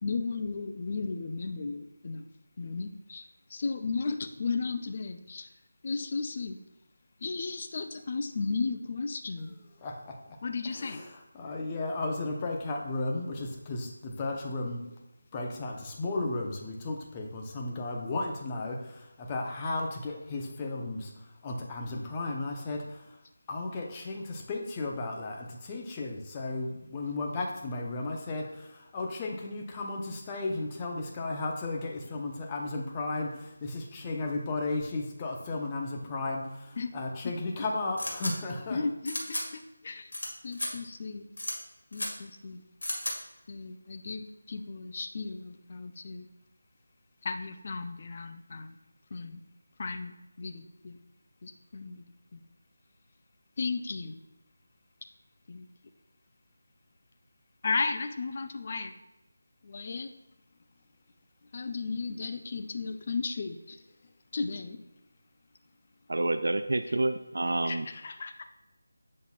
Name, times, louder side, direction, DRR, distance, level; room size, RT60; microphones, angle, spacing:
voice 1, 0.0-2.2 2.6-3.2 3.5-5.5 5.8-6.6 7.2-9.5 10.4-11.0 36.8-36.9 37.2-37.3 38.7-40.1 40.4-41.3 41.9-42.6 43.5-46.3 47.2-48.8 49.1-49.4 49.8-51.0 51.4-52.0 52.3-52.4 53.6-54.2 55.5-55.7 57.6-58.9 59.6-60.1 61.5-63.8 64.3-64.8 67.6-68.4, left 4 dB, 40° left, 8 dB, 0.5 m, -35 dB
voice 2, 9.8-10.2 10.7-14.8 15.3-21.1 21.4-23.0 23.5-38.8, left 2 dB, 20° left, 1 dB, 0.8 m, -34 dB
sound 1, 38.0-38.3 39.1-39.4 40.1-40.3 40.5-40.7 41.4-41.5 41.9-42.1 42.8-43.1, left 1 dB, 75° left, 1.9 m, -33 dB
voice 3, 66.1-67.9, right 2 dB, 65° right, 9 dB, 0.3 m, -28 dB
8.0 x 6.2 x 2.4 m, 0.98 s
figure-of-eight pair, 165°, 0 cm